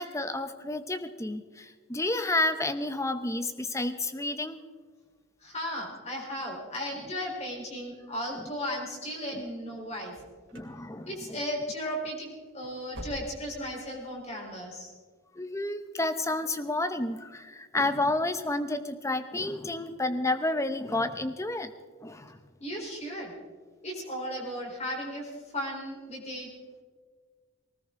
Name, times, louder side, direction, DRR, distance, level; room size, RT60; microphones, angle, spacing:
voice 1, 0.0-4.6 7.0-7.1 8.3-8.5 9.3-9.4 10.5-11.4 15.3-21.7 22.0-22.4, left 2 dB, 15° left, 10 dB, 0.8 m, -30 dB
voice 2, 5.4-10.1 11.1-12.3 12.5-14.9 22.6-23.3 23.8-26.5, equal, 30° left, -1 dB, 4.1 m, -35 dB
sound 1, 10.1-10.8 11.1-11.5 11.8-12.0 12.4-13.7 14.0-14.1 14.6-14.7, equal, 60° right, 3.1 m, -46 dB
20.0 x 19.0 x 3.8 m, 1.5 s
head